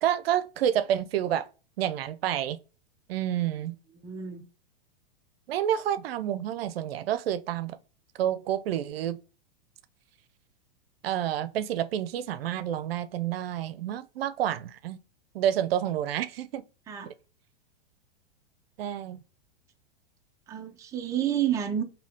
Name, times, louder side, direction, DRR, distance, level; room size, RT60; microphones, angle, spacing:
voice 1, 0.0-1.5 1.8-2.6 3.1-3.8 5.5-7.8 8.2-9.2 11.0-15.0 15.3-16.6 17.1-17.2 18.8-19.2, right 11 dB, 80° right, 0.5 m, -29 dB
voice 2, 4.0-4.4 16.9-17.1 20.5-21.8, right 10 dB, 10° right, 0.4 m, -29 dB
2.8 x 2.7 x 3.4 m
hypercardioid pair, 125°, 30 cm